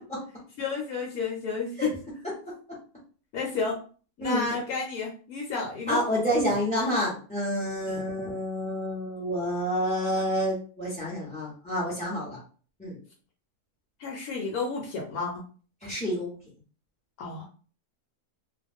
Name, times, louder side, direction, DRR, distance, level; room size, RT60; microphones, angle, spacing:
voice 1, 0.6-1.9 3.3-3.8 4.2-6.0 7.9-8.0 14.0-15.4 17.2-17.5, left 4 dB, 75° left, -1 dB, 1.1 m, -31 dB
voice 2, 4.2-4.5 5.9-12.4 12.8-13.0 15.8-16.4, equal, 5° left, -7 dB, 0.5 m, -28 dB
2.4 x 2.3 x 3.4 m, 0.40 s
omnidirectional pair, 1.6 m